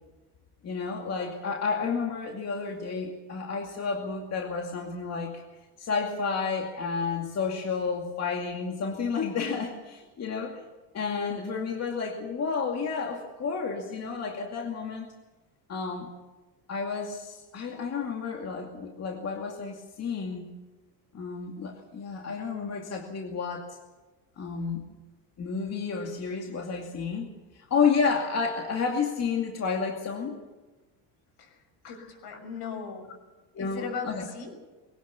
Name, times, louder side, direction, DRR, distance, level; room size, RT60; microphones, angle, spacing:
voice 1, 0.6-5.4 5.8-10.7 10.9-15.1 15.7-16.1 16.7-20.5 21.1-23.6 24.4-24.8 25.4-27.3 27.5-30.4 31.8-31.9 33.5-34.3, left 5 dB, 35° left, 1 dB, 2.4 m, -31 dB
voice 2, 31.4-33.1 33.6-34.5, left 5 dB, 60° left, 6 dB, 6.4 m, -38 dB
21.5 x 18.0 x 7.0 m, 1.2 s
cardioid pair, 125°, 43 cm